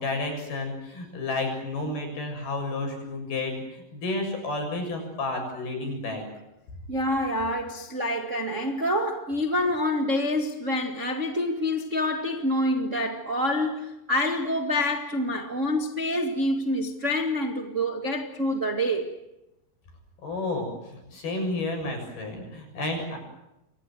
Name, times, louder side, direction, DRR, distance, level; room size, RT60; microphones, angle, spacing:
voice 1, 0.0-6.2 20.2-23.2, left 2 dB, 70° left, 9.3 m, -31 dB
voice 2, 6.9-19.1, left 1 dB, 30° right, 1.5 m, -27 dB
29.5 x 24.5 x 7.8 m
omnidirectional pair, 4.5 m